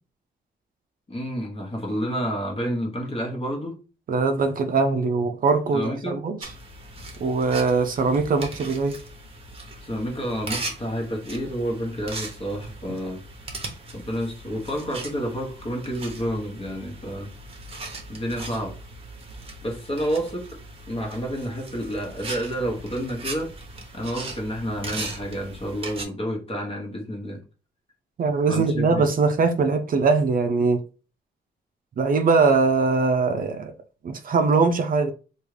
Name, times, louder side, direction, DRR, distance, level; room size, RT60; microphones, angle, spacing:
voice 1, 1.1-3.8 5.7-6.2 9.8-13.2 13.9-17.3 18.1-18.8 19.6-20.5 20.9-23.5 23.9-27.4 28.5-29.1, equal, 30° left, 1.1 m, -29 dB
voice 2, 4.1-6.4 7.2-9.0 28.2-30.8 32.0-33.7 34.0-35.1, right 4 dB, 50° right, 0.4 m, -21 dB
sound 1, 6.4-26.0, right 2 dB, 30° right, 0.9 m, -39 dB
3.5 x 2.4 x 3.2 m
cardioid pair, 125°, 19 cm